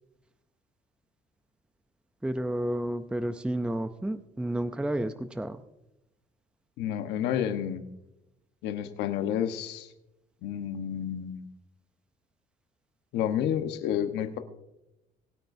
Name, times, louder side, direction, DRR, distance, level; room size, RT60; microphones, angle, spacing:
voice 1, 2.2-5.6, right 1 dB, 5° right, 10 dB, 0.6 m, -31 dB
voice 2, 6.8-7.8 8.6-9.9 10.4-11.5 13.1-14.4, left 9 dB, 85° left, 8 dB, 1.2 m, -30 dB
22.5 x 9.0 x 2.7 m, 0.92 s
cardioid pair, 110°, 17 cm